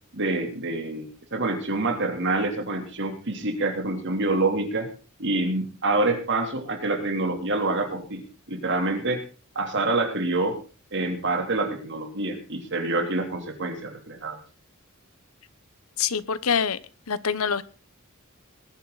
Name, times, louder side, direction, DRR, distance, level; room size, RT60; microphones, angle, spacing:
voice 1, 0.1-4.9 5.2-8.2 8.5-9.2 9.5-10.6 10.9-14.4, right 2 dB, 55° right, 3.2 m, -26 dB
voice 2, 16.0-16.8 17.1-17.6, left 6 dB, 70° left, 0.9 m, -25 dB
20.5 x 11.5 x 4.1 m
head